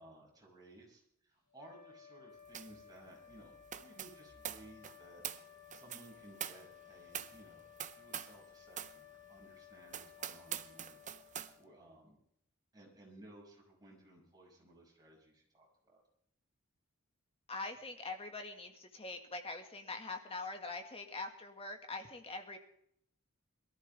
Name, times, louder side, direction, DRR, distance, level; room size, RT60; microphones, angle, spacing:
voice 1, 0.0-5.2 5.7-7.6 7.9-12.2 12.7-16.0, right 1 dB, 20° right, -3 dB, 6.2 m, -59 dB
sound 1, 1.5-12.1, left 10 dB, 70° left, 6.3 m, -58 dB
sound 2, 2.5-2.8 3.1-8.4 8.7-9.0 9.4-9.5 9.9-11.5, right 9 dB, 35° right, 0.7 m, -45 dB
voice 2, 17.5-22.6, left 3 dB, 25° left, 4 dB, 1.9 m, -43 dB
22.0 x 13.5 x 3.4 m, 0.70 s
head